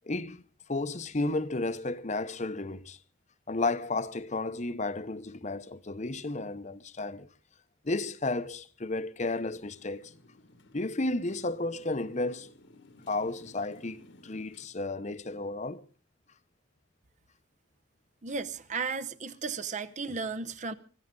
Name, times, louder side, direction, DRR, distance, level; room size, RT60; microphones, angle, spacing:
voice 1, 0.1-0.4 0.7-3.0 3.5-7.3 7.8-10.1 10.7-12.5 13.1-15.8 20.1-20.2, left 2 dB, 35° left, 0.9 m, -33 dB
Motorcycle, 9.2-14.7, left 1 dB, 70° left, 1.7 m, -56 dB
voice 2, 18.2-20.7, right 4 dB, 40° right, 0.8 m, -34 dB
24.5 x 15.0 x 3.8 m
head